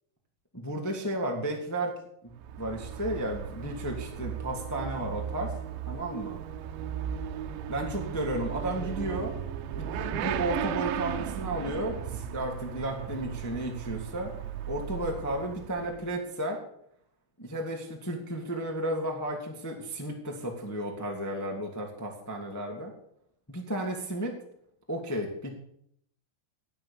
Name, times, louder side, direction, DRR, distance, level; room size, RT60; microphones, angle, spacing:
voice 1, 0.5-1.9 2.2-2.3 2.6-5.5 5.9-6.4 7.7-9.3 9.7-14.3 14.7-16.6 17.4-22.9 23.5-24.3 24.9-25.6, right 1 dB, 15° left, 0 dB, 0.6 m, -33 dB
Motorcycle / Accelerating revving vroom, 2.3-16.1, right 9 dB, 80° right, 3.1 m, -36 dB
17.5 x 9.2 x 7.2 m, 0.71 s
omnidirectional pair, 5.3 m